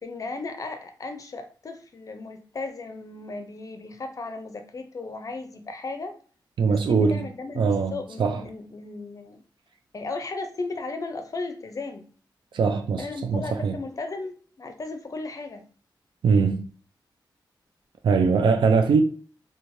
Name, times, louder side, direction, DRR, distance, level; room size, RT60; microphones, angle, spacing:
voice 1, 0.0-6.2 6.7-9.4 9.9-12.1 13.0-15.7, left 3 dB, 45° left, 0.5 m, -35 dB
voice 2, 6.6-7.3 7.6-8.4 12.5-13.7 16.2-16.7 18.0-19.0, right 5 dB, 75° right, 0.4 m, -22 dB
3.1 x 2.2 x 2.6 m
wide cardioid pair, 110°, 8 cm